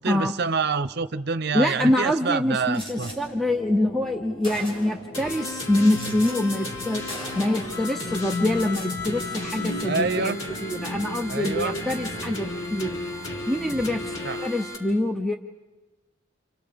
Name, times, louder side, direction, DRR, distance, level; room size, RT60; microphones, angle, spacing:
voice 1, 0.0-3.1 9.8-10.4 11.3-11.8 14.2-14.5, right 4 dB, 55° right, 12 dB, 0.8 m, -27 dB
voice 2, 1.5-7.0 7.4-10.3 10.6-13.0 13.5-14.1 14.4-15.3, left 1 dB, ahead, 4 dB, 0.7 m, -25 dB
Gunshot gunfire, 2.7-3.2 4.0-4.1 4.4-5.1 5.8-6.3 6.6-6.8 7.1-7.7 8.6-8.9, equal, 25° left, 5.7 m, -40 dB
sound 1, 2.8-14.3, left 2 dB, 45° left, 1.5 m, -38 dB
sound 2, 5.1-14.8, left 2 dB, 85° left, 4.8 m, -34 dB
30.0 x 28.0 x 5.2 m, 1.2 s
head